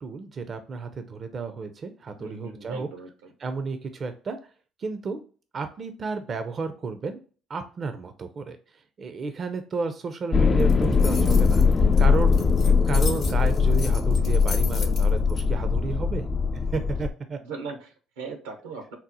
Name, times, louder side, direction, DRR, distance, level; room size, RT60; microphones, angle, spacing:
voice 1, 0.0-2.9 3.4-4.4 4.8-5.2 5.5-7.2 7.5-8.6 9.0-16.3 16.7-17.4, right 4 dB, 45° right, 8 dB, 0.4 m, -32 dB
voice 2, 2.2-3.3 14.8-15.2 17.4-19.0, right 4 dB, 90° right, 6 dB, 0.7 m, -39 dB
sound 1, 10.3-17.1, left 5 dB, 40° left, 0.3 m, -21 dB
sound 2, 10.6-15.4, left 4 dB, 55° left, 0.7 m, -37 dB
4.0 x 2.0 x 2.7 m, 0.39 s
hypercardioid pair, 55°, 0 cm